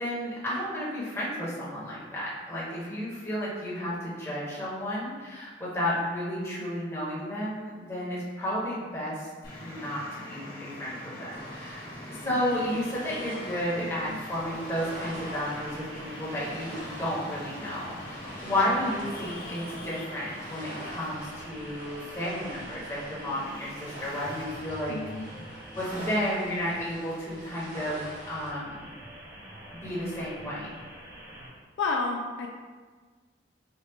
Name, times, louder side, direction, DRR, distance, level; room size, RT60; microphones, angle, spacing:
voice 1, 0.0-9.3 9.6-24.9 25.2-28.9 29.7-30.8, left 1 dB, 15° left, -8 dB, 1.1 m, -32 dB
Traffic noise roadway noise, 9.4-24.4, left 1 dB, 50° left, 1.2 m, -43 dB
sound 1, 11.3-28.5, right 1 dB, 45° right, 1.1 m, -45 dB
voice 2, 13.8-14.2 24.9-25.2 31.8-32.5, left 3 dB, 70° left, 1 dB, 0.3 m, -31 dB
sound 2, 14.3-31.5, right 1 dB, 65° right, 1.2 m, -47 dB
4.4 x 2.3 x 3.5 m, 1.5 s
head